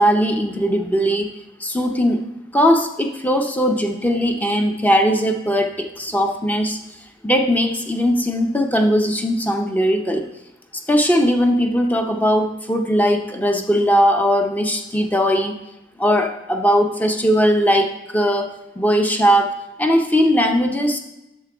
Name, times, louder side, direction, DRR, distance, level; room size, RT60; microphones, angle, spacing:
voice 1, 0.0-1.3 1.6-2.2 2.5-6.8 7.2-10.2 10.9-15.5 16.0-21.0, equal, 10° left, 4 dB, 0.7 m, -19 dB
8.6 x 6.7 x 3.5 m, 0.92 s
head